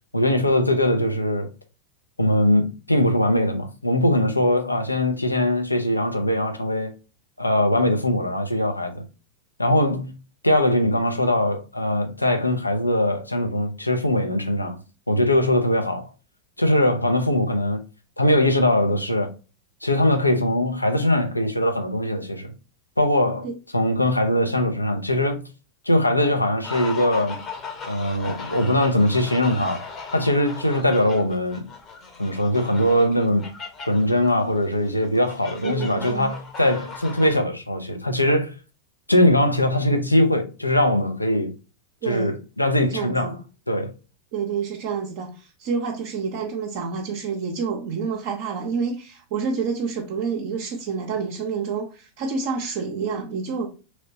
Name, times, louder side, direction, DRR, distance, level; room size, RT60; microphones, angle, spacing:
voice 1, 0.1-1.5 2.2-6.9 7.4-9.0 9.6-10.1 10.4-14.8 15.1-16.1 16.6-17.8 18.2-19.3 19.8-22.5 23.0-23.5 23.7-25.4 25.9-27.4 27.9-29.9 30.1-31.7 32.2-33.5 33.9-38.5 39.1-41.5 42.1-43.3 43.7-43.9, left 1 dB, 85° left, 0.6 m, -21 dB
sound 1, 26.6-37.4, left 5 dB, 30° left, 0.8 m, -38 dB
voice 2, 35.6-36.3 42.0-42.4 42.8-43.4 44.3-53.7, right 5 dB, 45° right, 0.5 m, -28 dB
3.0 x 2.9 x 2.7 m
figure-of-eight pair, 90°, 0 cm